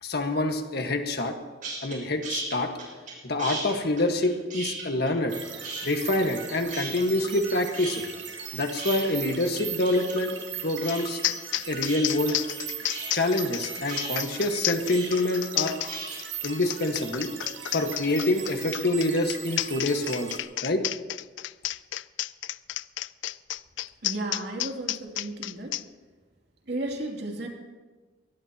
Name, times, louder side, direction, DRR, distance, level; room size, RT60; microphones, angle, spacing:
voice 1, 0.0-1.4 1.8-2.7 3.2-5.3 5.8-8.0 8.5-10.3 10.6-11.2 11.7-12.4 13.1-15.7 16.4-17.3 17.7-20.3 20.6-20.8, left 2 dB, 60° left, 5 dB, 1.6 m, -26 dB
sound 1, 1.6-2.0 2.2-3.1 3.4-5.4 5.6-6.4 6.7-7.5 7.7-16.2, right 3 dB, 50° right, 6.3 m, -37 dB
sound 2, 5.3-20.4, right 8 dB, 85° right, 1.9 m, -39 dB
sound 3, 10.9-11.0 11.2-25.8, left 15 dB, 85° left, 0.4 m, -31 dB
voice 2, 24.0-25.8 26.7-27.5, right 2 dB, 65° right, 1 dB, 2.8 m, -33 dB
22.5 x 19.0 x 3.0 m, 1.3 s
head